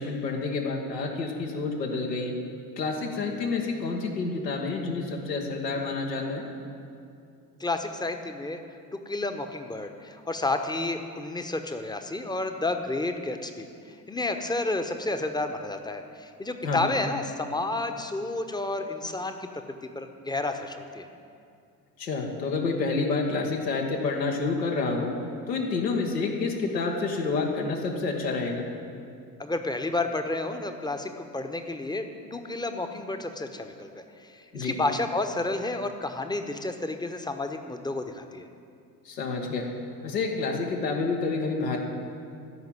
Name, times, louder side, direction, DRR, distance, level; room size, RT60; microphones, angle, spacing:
voice 1, 0.0-2.3 2.8-6.4 16.6-16.8 22.0-25.1 25.5-28.7 34.5-34.7 39.0-39.7 40.0-41.8, left 4 dB, 80° left, 1 dB, 1.6 m, -28 dB
voice 2, 7.6-8.6 8.9-13.7 14.1-21.1 29.4-38.5, left 2 dB, 10° left, 7 dB, 1.0 m, -31 dB
14.5 x 5.8 x 8.8 m, 2.4 s
figure-of-eight pair, 55°, 49 cm